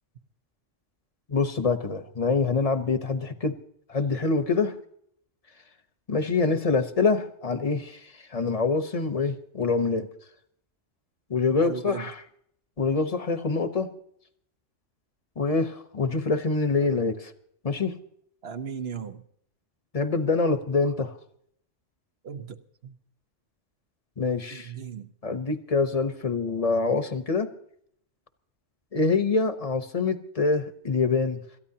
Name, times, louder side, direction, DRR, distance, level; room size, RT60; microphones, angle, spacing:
voice 1, 1.3-3.5 3.9-4.7 6.1-10.1 11.3-12.2 12.8-13.9 15.4-17.3 17.6-18.0 19.9-21.1 24.2-24.7 25.2-27.5 28.9-31.4, left 4 dB, 35° left, 1.0 m, -25 dB
voice 2, 11.6-12.1 18.4-19.2 22.2-23.0 24.5-25.1, right 6 dB, 60° right, 1.2 m, -37 dB
27.0 x 13.5 x 2.8 m
omnidirectional pair, 1.2 m